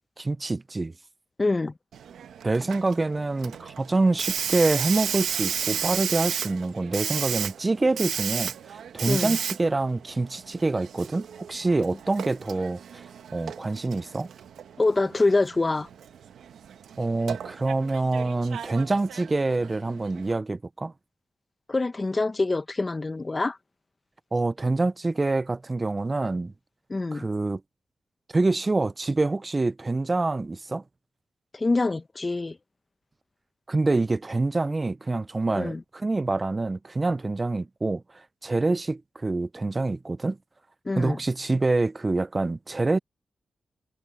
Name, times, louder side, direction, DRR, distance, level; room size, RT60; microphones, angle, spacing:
voice 1, 0.2-0.9 2.4-13.0 13.3-14.3 17.0-20.9 24.3-26.5 27.1-27.6 28.3-30.8 33.7-38.0 38.4-40.4 41.0-43.0, right 3 dB, 30° right, 0.4 m, -26 dB
voice 2, 1.4-1.7 9.1-9.4 14.8-15.9 21.7-23.6 26.9-27.3 31.5-32.6 35.6-35.8 40.8-41.2, left 3 dB, 35° left, 1.0 m, -25 dB
Hiss, 1.9-20.3, right 8 dB, 90° right, 1.1 m, -34 dB
cardioid pair, 65°, 0 cm